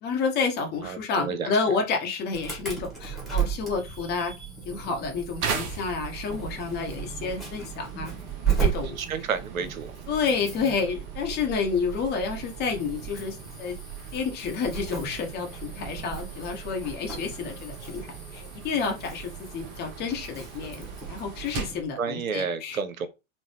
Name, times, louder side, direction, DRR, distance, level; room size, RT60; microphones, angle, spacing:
voice 1, 0.0-4.3 4.6-8.1 8.5-9.0 10.1-13.8 14.1-18.1 18.3-22.8, left 5 dB, 25° left, 0.7 m, -30 dB
voice 2, 0.8-1.5 9.0-9.9 22.0-23.1, right 6 dB, 75° right, 0.6 m, -30 dB
Insect / Alarm, 2.3-21.8, right 8 dB, ahead, 1.3 m, -35 dB
sound 1, 5.4-21.9, right 6 dB, 30° right, 0.8 m, -40 dB
3.8 x 2.0 x 3.1 m
figure-of-eight pair, 95°, 42 cm